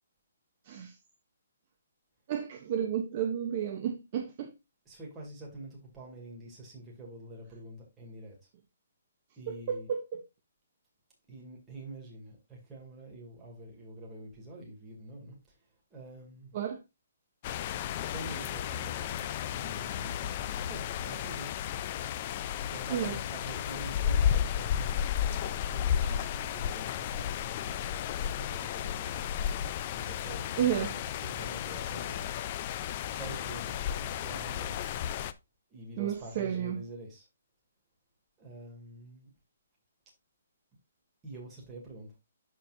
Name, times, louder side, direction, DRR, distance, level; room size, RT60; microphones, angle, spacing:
voice 1, 0.6-1.0 2.3-4.5 9.5-10.2 16.5-16.8 22.9-23.2 30.6-31.0 36.0-36.8, right 9 dB, 30° right, 0.7 m, -32 dB
voice 2, 4.9-8.5 9.4-9.9 11.3-16.5 18.1-21.5 22.7-29.3 29.9-32.3 33.0-34.8 35.7-37.3 38.4-39.3 41.2-42.2, right 1 dB, 10° right, 2.3 m, -46 dB
sound 1, 17.4-35.3, left 9 dB, 25° left, 0.4 m, -33 dB
12.0 x 4.4 x 2.5 m
hypercardioid pair, 170°, 0 cm